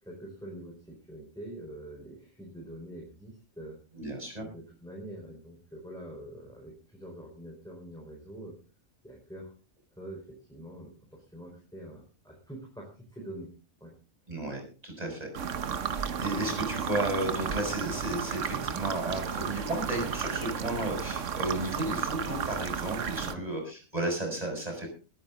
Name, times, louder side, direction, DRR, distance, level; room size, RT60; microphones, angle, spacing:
voice 1, 0.0-3.8 4.4-8.5 9.0-9.5 10.0-13.5 13.8-13.9 15.0-15.2 16.2-16.6 23.2-23.4, right 1 dB, 5° left, -1 dB, 4.6 m, -45 dB
voice 2, 3.9-4.5 14.3-15.3 16.2-24.9, right 1 dB, 30° right, 3 dB, 6.3 m, -33 dB
sound 1, 15.3-23.3, right 7 dB, 70° right, 1.4 m, -33 dB
21.5 x 9.6 x 3.9 m, 0.35 s
omnidirectional pair, 1.3 m